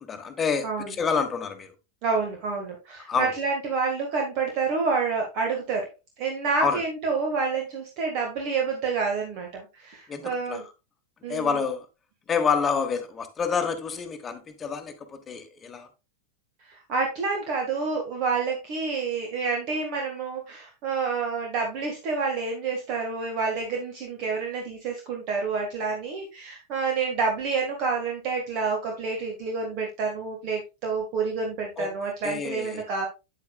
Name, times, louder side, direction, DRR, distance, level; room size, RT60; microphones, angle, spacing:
voice 1, 0.0-1.7 3.1-3.3 6.6-6.8 10.1-10.6 11.3-11.8 12.3-15.9 31.8-31.9 32.2-32.8, left 6 dB, 20° left, 1.3 m, -28 dB
voice 2, 0.6-1.0 2.0-5.9 6.2-10.6 11.2-11.6 16.7-33.1, right 4 dB, 40° right, 1.8 m, -28 dB
8.4 x 8.3 x 2.3 m
figure-of-eight pair, 90°, 0 cm